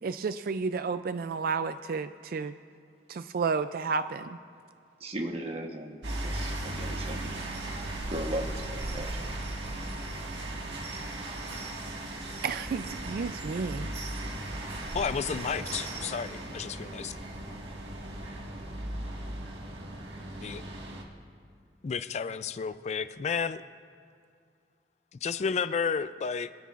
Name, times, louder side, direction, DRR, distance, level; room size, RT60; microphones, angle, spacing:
voice 1, 0.0-2.6 3.1-4.4 12.4-13.9, right 5 dB, 55° right, 11 dB, 0.3 m, -31 dB
voice 2, 5.0-7.4 8.1-9.3, right 1 dB, 35° right, 3 dB, 1.2 m, -37 dB
sound 1, 6.0-21.0, right 1 dB, 80° right, 1.8 m, -37 dB
voice 3, 14.9-17.2 20.4-20.6 21.8-23.6 25.2-26.5, left 6 dB, 40° left, 13 dB, 0.3 m, -32 dB
26.0 x 13.0 x 2.5 m, 2.4 s
head